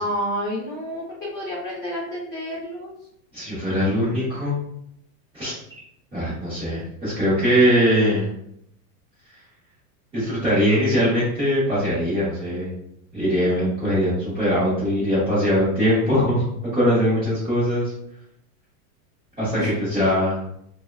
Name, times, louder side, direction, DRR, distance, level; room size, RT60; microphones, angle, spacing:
voice 1, 0.0-2.9 19.6-19.7, equal, 25° left, -8 dB, 0.6 m, -29 dB
voice 2, 3.3-4.6 5.3-5.5 6.1-8.3 10.1-12.7 13.1-17.9 19.4-20.4, equal, 10° right, -12 dB, 0.7 m, -21 dB
3.4 x 2.1 x 2.2 m, 0.74 s
supercardioid pair, 170°, 44 cm